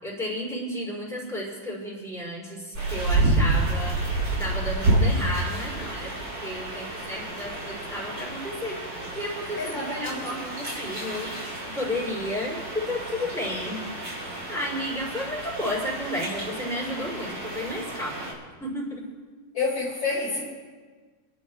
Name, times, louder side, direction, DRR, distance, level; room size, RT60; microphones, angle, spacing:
voice 1, 0.0-4.0 4.3-8.8 9.1-11.3 11.6-14.1 14.5-18.3 18.6-19.0, left 1 dB, ahead, -5 dB, 5.1 m, -32 dB
sound 1, 2.7-18.3, right 2 dB, 55° right, 4.6 m, -29 dB
voice 2, 9.6-10.2 19.5-20.5, left 3 dB, 60° left, -3 dB, 3.0 m, -28 dB
29.0 x 11.0 x 3.2 m, 1.5 s
omnidirectional pair, 2.3 m